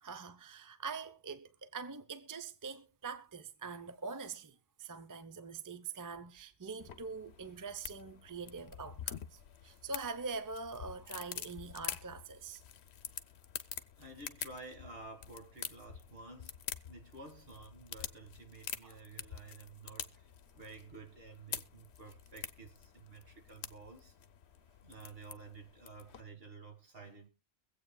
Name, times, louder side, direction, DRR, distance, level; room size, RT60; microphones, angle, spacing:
voice 1, 0.0-12.6 18.8-19.0, right 4 dB, 20° right, 0.6 m, -44 dB
sound 1, 6.8-26.2, left 9 dB, 75° left, 1.0 m, -47 dB
voice 2, 14.0-16.6 16.8-24.2 24.8-27.3, right 3 dB, 60° right, 2.1 m, -52 dB
23.5 x 8.1 x 2.2 m
omnidirectional pair, 1.1 m